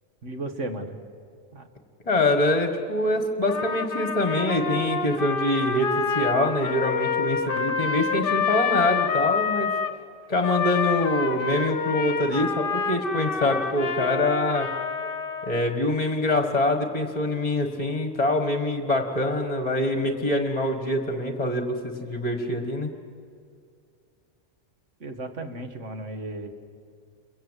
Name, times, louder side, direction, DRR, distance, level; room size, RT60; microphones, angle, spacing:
voice 1, 0.2-1.0 1.5-1.7 25.0-26.5, right 2 dB, 75° right, 6 dB, 2.2 m, -34 dB
voice 2, 2.1-5.9 6.1-9.7 10.3-14.7 15.4-22.9, left 1 dB, 30° left, 5 dB, 1.7 m, -25 dB
Trumpet, 3.5-9.9 10.4-15.7, left 5 dB, 50° left, 1.2 m, -28 dB
28.5 x 24.0 x 8.2 m, 2.3 s
omnidirectional pair, 1.3 m